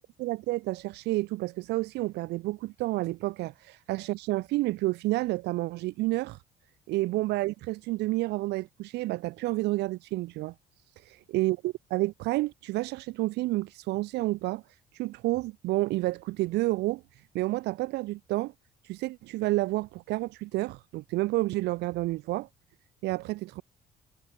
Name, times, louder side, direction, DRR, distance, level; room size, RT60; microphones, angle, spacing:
voice 1, 0.2-6.4 6.9-10.5 11.1-14.6 14.9-17.0 17.3-18.5 18.8-22.5 23.0-23.6, right 19 dB, 85° right, 0.9 m, -30 dB
cardioid pair, 110°, 17 cm